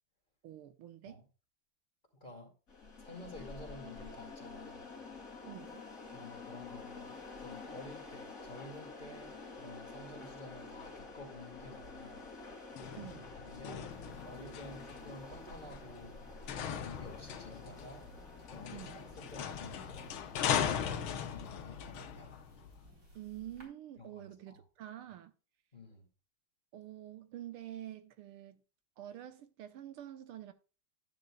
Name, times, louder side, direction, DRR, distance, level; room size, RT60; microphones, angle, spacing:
voice 1, 0.4-1.3 5.5-5.9 13.0-13.3 18.7-19.0 23.2-25.3 26.7-28.6 29.0-30.5, right 12 dB, 80° right, 1.8 m, -47 dB
voice 2, 2.1-2.5 3.0-4.9 6.1-12.2 13.3-13.9 14.2-18.0 18.5-22.4 24.0-24.6 25.7-26.1, left 2 dB, 20° left, 2.3 m, -51 dB
sound 1, 2.7-20.7, left 3 dB, 40° left, 2.8 m, -49 dB
sound 2, 12.8-22.9, left 8 dB, 70° left, 1.7 m, -39 dB
sound 3, 13.9-23.6, equal, 55° right, 4.5 m, -60 dB
11.5 x 9.7 x 2.3 m
omnidirectional pair, 2.4 m